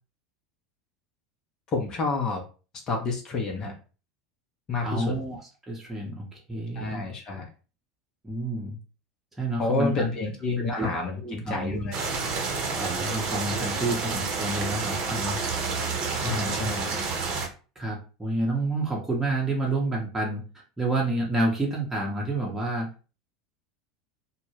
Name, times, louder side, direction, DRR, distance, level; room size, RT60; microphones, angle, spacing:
voice 1, 1.7-2.4 2.9-3.7 4.7-5.1 6.8-7.5 9.6-12.0 16.1-16.9, left 3 dB, 35° left, 1 dB, 0.6 m, -29 dB
voice 2, 4.8-5.4 5.7-7.0 8.2-8.8 9.4-10.0 10.7-11.9 12.8-15.4 16.2-17.0 17.8-20.4 20.8-22.9, right 2 dB, 10° right, -3 dB, 0.8 m, -29 dB
sound 1, 11.9-17.5, right 4 dB, 45° right, 0.7 m, -29 dB
2.1 x 2.0 x 3.1 m, 0.35 s
figure-of-eight pair, 80°, 2 cm